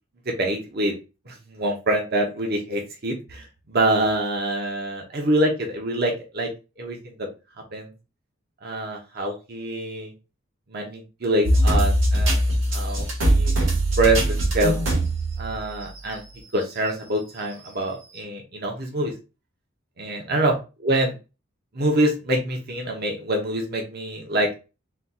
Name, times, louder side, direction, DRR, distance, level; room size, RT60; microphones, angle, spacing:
voice 1, 0.3-0.9 1.3-6.5 6.8-7.3 7.7-7.9 8.6-10.1 10.7-12.4 12.7-13.5 14.0-14.7 15.4-16.2 16.5-19.1 20.0-20.5 20.8-21.1 21.7-24.5, right 1 dB, 55° right, 2 dB, 1.0 m, -25 dB
sound 1, 11.4-16.1 16.6-16.7 17.7-17.8, right 1 dB, 70° right, 2.2 m, -21 dB
4.2 x 2.5 x 4.1 m, 0.30 s
head